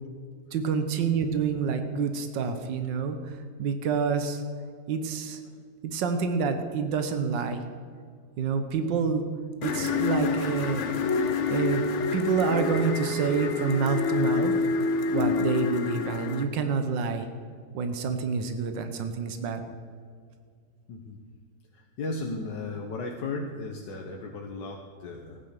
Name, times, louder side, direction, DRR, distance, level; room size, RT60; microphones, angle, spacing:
voice 1, 0.5-4.4 4.9-5.4 5.8-7.6 8.4-9.3 9.6-10.9 11.5-11.8 12.1-14.5 15.1-17.3 17.7-19.6, right 5 dB, 80° right, 8 dB, 1.7 m, -28 dB
sound 1, 9.6-16.4, left 4 dB, 50° left, 1.1 m, -27 dB
voice 2, 20.9-21.2 21.7-25.4, left 3 dB, 75° left, 1 dB, 1.7 m, -35 dB
15.5 x 9.7 x 6.6 m, 2.1 s
omnidirectional pair, 1.9 m